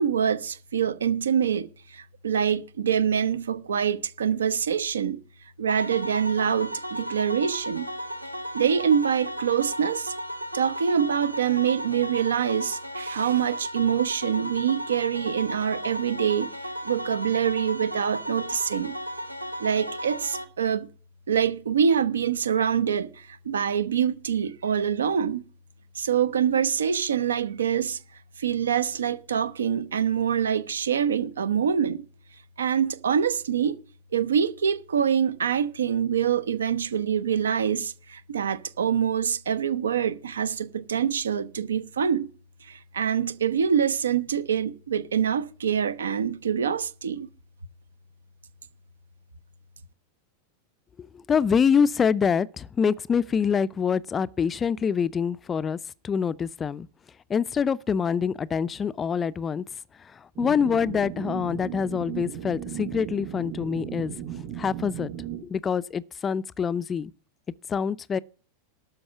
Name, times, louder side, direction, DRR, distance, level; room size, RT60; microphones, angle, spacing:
voice 1, 0.0-5.2 5.6-7.9 8.5-10.1 10.5-16.5 16.8-19.0 19.6-20.9 21.3-25.4 25.9-28.0 28.4-32.0 32.6-33.8 34.1-42.3 42.6-47.3, right 8 dB, 70° right, 0.8 m, -25 dB
sound 1, 5.7-20.4, equal, 90° right, 1.2 m, -35 dB
voice 2, 51.3-55.8 56.0-56.9 57.3-59.6 60.1-64.1 64.6-65.1 65.4-67.1 67.7-68.2, left 6 dB, 20° left, 0.4 m, -25 dB
sound 2, 60.3-65.4, right 10 dB, 40° right, 3.5 m, -36 dB
12.5 x 5.3 x 8.2 m
figure-of-eight pair, 90°, 0 cm